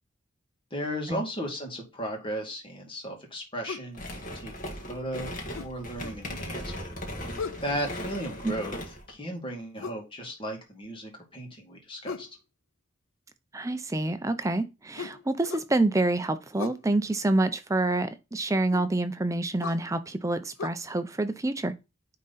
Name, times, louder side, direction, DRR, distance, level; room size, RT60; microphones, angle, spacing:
voice 1, 0.7-7.0 7.6-8.8 9.1-12.3, equal, 25° left, 2.2 m, -36 dB
sound 1, 3.7-3.9 5.5-6.2 7.4-7.7 9.8-10.1 12.0-12.4 15.0-15.7 16.6-16.8 18.7-18.9 19.6-19.8 20.6-20.7, left 5 dB, 75° left, 0.5 m, -37 dB
sound 2, 3.9-9.1, left 1 dB, 40° left, 1.8 m, -38 dB
voice 2, 13.5-21.7, right 2 dB, 15° right, 0.5 m, -27 dB
9.4 x 3.8 x 4.1 m
head